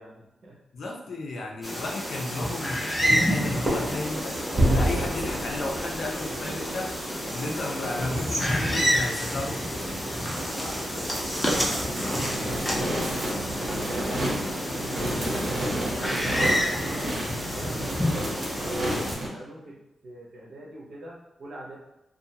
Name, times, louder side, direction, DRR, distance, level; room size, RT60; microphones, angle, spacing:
voice 1, 0.0-0.6 10.4-14.0 14.4-17.1 17.5-19.8 20.0-21.8, right 1 dB, 60° right, -3 dB, 0.8 m, -44 dB
voice 2, 0.7-9.7, left 2 dB, 70° left, 0 dB, 0.5 m, -33 dB
sound 1, 1.6-19.1, equal, 10° left, 0.6 m, -30 dB
sound 2, 3.3-18.8, right 1 dB, 30° right, 0.8 m, -33 dB
sound 3, 11.0-19.3, right 1 dB, 85° right, 1.1 m, -31 dB
2.5 x 2.3 x 2.7 m, 0.94 s
wide cardioid pair, 130°, 0 cm